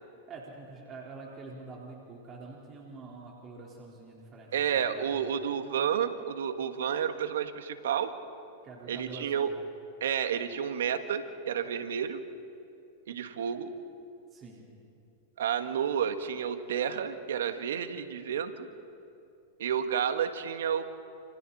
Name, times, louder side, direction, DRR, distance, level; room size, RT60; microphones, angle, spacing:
voice 1, 0.3-5.2 8.6-9.5 14.3-14.6, right 3 dB, 30° right, -3 dB, 4.5 m, -46 dB
voice 2, 4.5-8.1 8.9-9.5 10.0-12.2 13.1-13.7 15.4-18.7 19.6-20.8, right 8 dB, 75° right, 8 dB, 1.8 m, -30 dB
29.5 x 29.5 x 4.3 m, 2.6 s
hypercardioid pair, 110°, 0 cm